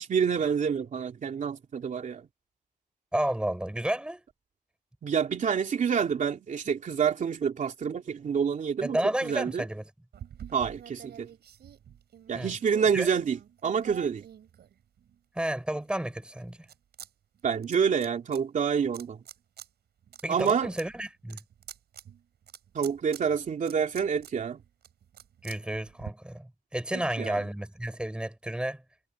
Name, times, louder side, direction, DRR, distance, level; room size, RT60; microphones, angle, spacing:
voice 1, 0.0-2.3 5.0-9.7 10.5-11.3 12.3-14.2 17.4-19.2 20.3-20.7 22.7-24.6 27.2-27.4, right 7 dB, 50° right, 2.9 m, -28 dB
voice 2, 3.1-4.2 8.8-9.8 12.3-12.5 12.9-13.1 15.3-16.6 20.2-21.4 25.4-28.8, right 1 dB, 5° right, 4.3 m, -31 dB
sound 1, 10.1-15.2 15.7-17.1 17.3-18.4 18.9-19.7 20.0-26.1, right 9 dB, 90° right, 5.8 m, -48 dB
wide cardioid pair, 170°, 17 cm